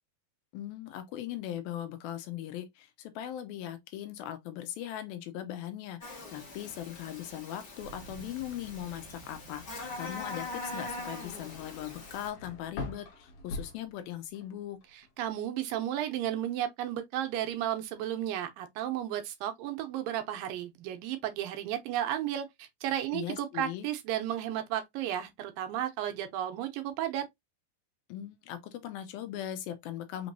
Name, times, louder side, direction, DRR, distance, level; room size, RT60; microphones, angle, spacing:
voice 1, 0.5-14.8 23.1-23.9 28.1-30.3, left 11 dB, 85° left, 2.7 m, -39 dB
Buzz, 6.0-12.3, left 2 dB, 45° left, 1.4 m, -42 dB
sound 1, 7.8-13.1 13.8-13.9, right 5 dB, 60° right, 1.6 m, -54 dB
sound 2, 10.3-14.5 14.8-15.4, left 3 dB, 65° left, 2.7 m, -43 dB
voice 2, 15.2-27.3, right 11 dB, 75° right, 2.5 m, -33 dB
6.1 x 3.1 x 2.6 m
omnidirectional pair, 4.2 m